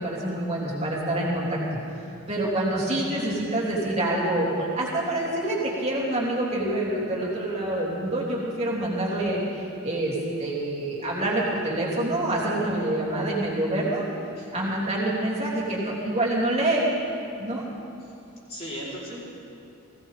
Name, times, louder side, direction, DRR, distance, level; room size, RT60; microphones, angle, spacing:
voice 1, 0.0-1.5 2.3-14.0 14.5-16.9 17.4-17.7, right 1 dB, 30° right, -6 dB, 3.3 m, -26 dB
voice 2, 18.5-19.2, equal, 30° left, -9 dB, 4.7 m, -37 dB
20.0 x 17.0 x 3.8 m, 2.7 s
head